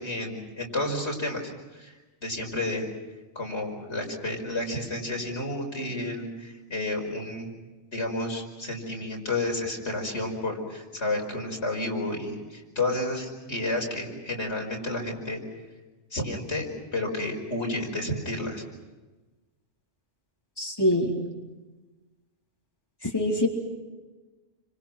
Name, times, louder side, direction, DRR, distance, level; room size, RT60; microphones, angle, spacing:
voice 1, 0.0-1.9 2.2-2.9 3.4-7.5 7.9-15.4 16.1-16.7 16.9-18.6, left 2 dB, 75° left, 1 dB, 5.5 m, -31 dB
voice 2, 20.6-21.2 23.1-23.5, left 1 dB, 20° left, -2 dB, 4.0 m, -24 dB
29.0 x 26.5 x 6.1 m, 1.2 s
omnidirectional pair, 1.1 m